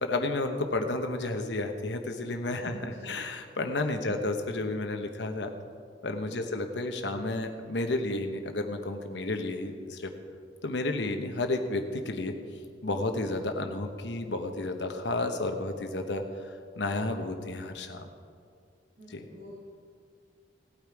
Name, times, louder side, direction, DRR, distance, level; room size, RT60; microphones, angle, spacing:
voice 1, 0.0-5.5 6.0-10.1 10.6-12.3 12.8-18.1 19.1-19.3, left 2 dB, 70° left, 5 dB, 1.1 m, -32 dB
voice 2, 2.6-3.1 4.0-4.2 6.3-6.6 13.6-13.8 19.0-19.6, right 1 dB, 65° right, -6 dB, 2.5 m, -47 dB
17.5 x 8.8 x 4.7 m, 2.2 s
head